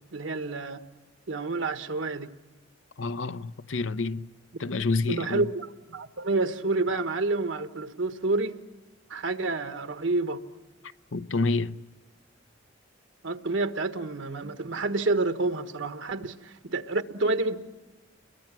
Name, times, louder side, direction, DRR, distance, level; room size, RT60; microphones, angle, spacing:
voice 1, 0.1-0.8 1.3-2.3 5.1-8.6 9.1-10.4 13.2-17.6, right 3 dB, 75° right, 1.4 m, -29 dB
voice 2, 3.0-4.3 4.6-5.5 11.1-11.8, left 3 dB, 80° left, 0.8 m, -28 dB
30.0 x 22.5 x 7.5 m
head